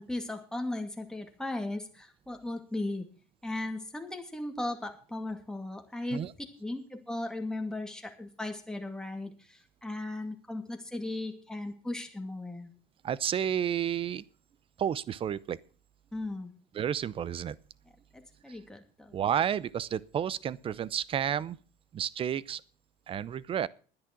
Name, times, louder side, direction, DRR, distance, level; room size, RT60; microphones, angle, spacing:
voice 1, 0.0-3.1 3.4-6.2 6.6-12.7 16.1-16.6 18.1-19.1, left 2 dB, 5° left, 2.4 m, -37 dB
voice 2, 13.0-14.2 14.8-15.6 16.7-17.6 19.1-21.6 21.9-22.6 23.1-23.7, right 9 dB, 30° right, 0.6 m, -31 dB
12.0 x 10.0 x 5.9 m
cardioid pair, 130°, 18 cm